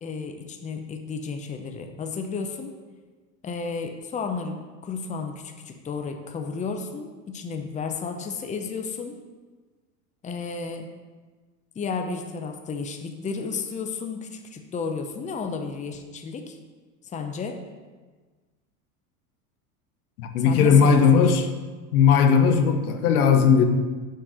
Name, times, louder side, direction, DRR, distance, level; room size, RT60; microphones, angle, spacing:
voice 1, 0.0-2.7 3.4-9.2 10.2-10.9 11.8-16.6 17.1-17.6 20.4-21.3, left 4 dB, 15° left, 5 dB, 0.7 m, -32 dB
voice 2, 20.2-21.5 21.9-23.6, left 6 dB, 80° left, 7 dB, 1.0 m, -18 dB
6.3 x 4.6 x 6.4 m, 1.4 s
supercardioid pair, 105°, 43 cm